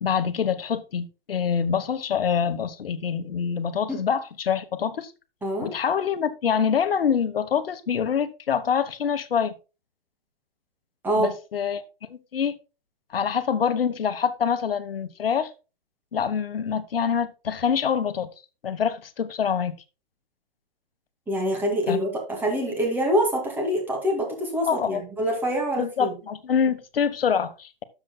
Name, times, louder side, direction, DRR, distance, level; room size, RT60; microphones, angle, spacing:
voice 1, 0.0-5.1 5.6-9.5 11.2-11.8 12.1-12.6 13.1-15.5 16.1-18.3 18.6-19.7 21.9-22.0 24.7-25.0 25.8-27.8, left 7 dB, 75° left, 1.2 m, -25 dB
voice 2, 21.3-26.1, equal, 5° right, 2.2 m, -25 dB
12.5 x 7.1 x 2.2 m
hypercardioid pair, 155°, 29 cm